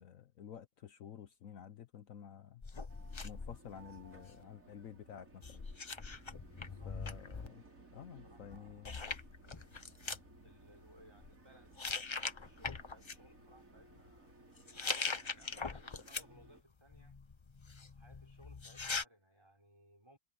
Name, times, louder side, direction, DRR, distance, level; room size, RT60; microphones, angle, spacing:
voice 1, 0.0-2.6 3.2-5.6 6.8-7.6 7.9-9.0, left 8 dB, 65° left, 1.2 m, -51 dB
sound 1, 2.6-4.4 5.4-7.5 8.5-8.6 8.8-10.2 11.0-11.3 11.8-13.1 14.6-16.5 16.9-19.0, left 4 dB, 30° left, 0.6 m, -42 dB
sound 2, 2.9-16.6, right 2 dB, 65° right, 4.7 m, -60 dB
voice 2, 6.5-7.0 7.7-9.7 10.4-14.4 15.1-17.2 17.9-20.2, equal, 20° right, 6.0 m, -64 dB
omnidirectional pair, 1.5 m